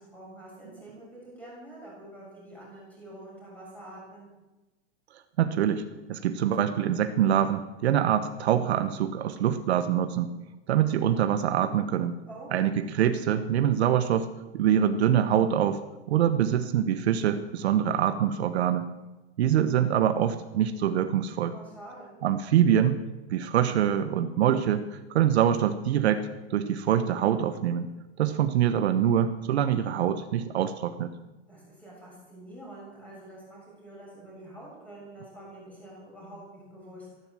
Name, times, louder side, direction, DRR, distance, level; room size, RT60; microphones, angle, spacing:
voice 1, 0.0-4.3 12.3-12.8 21.5-22.2 31.5-37.1, right 1 dB, 5° left, -4 dB, 6.6 m, -46 dB
voice 2, 5.4-5.8 6.1-10.3 10.7-12.2 12.5-15.8 16.1-18.9 19.4-21.5 22.2-23.0 23.3-27.9 28.2-31.1, right 10 dB, 70° right, 10 dB, 1.2 m, -24 dB
15.0 x 12.0 x 7.6 m, 1.1 s
supercardioid pair, 170°, 34 cm